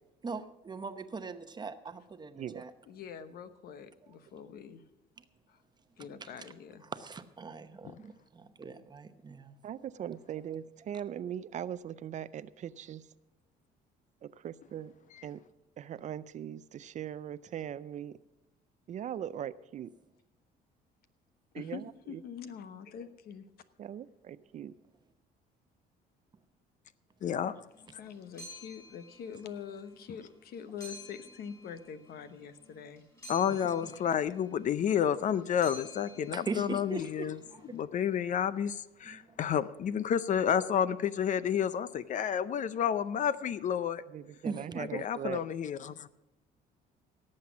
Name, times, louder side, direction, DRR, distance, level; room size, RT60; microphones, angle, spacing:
voice 1, 0.2-2.7 4.0-4.1 6.0-6.5 6.8-9.6 33.8-33.9 36.3-37.8 39.0-39.4 44.4-44.8, right 4 dB, 25° right, 10 dB, 0.9 m, -41 dB
voice 2, 2.9-4.8 5.5-5.6 6.0-6.8 21.5-23.5 28.0-33.0, left 7 dB, 65° left, 11 dB, 1.0 m, -45 dB
voice 3, 9.6-13.1 14.2-14.9 15.2-15.4 15.8-18.2 18.9-19.9 21.5-22.2 23.8-24.7 44.1-45.4, right 10 dB, 45° right, 16 dB, 0.4 m, -40 dB
voice 4, 27.2-27.6 33.3-37.4 37.7-44.0 44.8-46.1, left 8 dB, 50° left, 15 dB, 0.5 m, -30 dB
sound 1, 27.7-37.7, left 1 dB, 20° left, 6.2 m, -52 dB
17.5 x 7.6 x 6.1 m, 0.94 s
cardioid pair, 110°, 17 cm